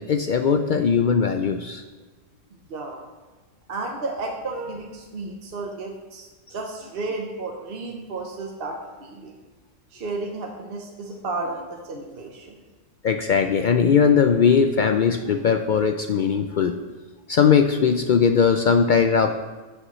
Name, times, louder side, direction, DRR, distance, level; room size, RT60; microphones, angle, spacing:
voice 1, 0.0-1.8 13.0-16.8 17.3-19.4, left 6 dB, 70° left, 6 dB, 0.4 m, -19 dB
voice 2, 2.7-3.1 3.7-9.3 9.9-12.6, right 3 dB, 50° right, 1 dB, 1.0 m, -33 dB
14.5 x 6.5 x 3.1 m, 1.2 s
omnidirectional pair, 1.3 m